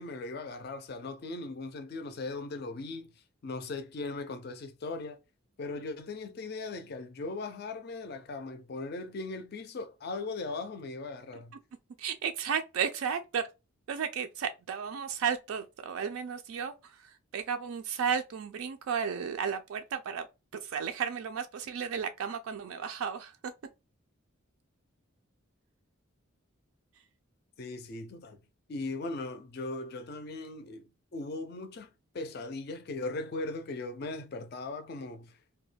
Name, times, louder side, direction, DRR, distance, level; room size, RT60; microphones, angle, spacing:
voice 1, 0.0-3.1 3.4-5.2 5.6-11.5 27.6-28.4 28.7-35.4, left 3 dB, 50° left, 0.4 m, -38 dB
voice 2, 12.0-13.4 13.9-20.3 20.5-23.5, right 7 dB, 80° right, 0.3 m, -33 dB
2.2 x 2.1 x 3.1 m
head